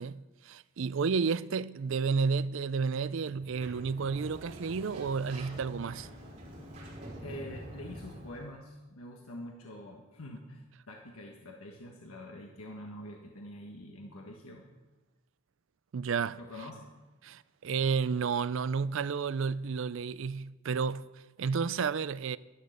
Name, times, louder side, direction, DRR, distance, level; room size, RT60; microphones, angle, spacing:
voice 1, 0.0-6.1 15.9-16.4 17.2-21.1 21.4-22.4, right 5 dB, 65° right, 0.4 m, -31 dB
Sliding door, 3.2-8.6, right 1 dB, 30° right, 4.2 m, -46 dB
voice 2, 7.2-14.7 16.4-16.9, left 1 dB, 90° left, 1.4 m, -45 dB
12.0 x 11.5 x 6.6 m
head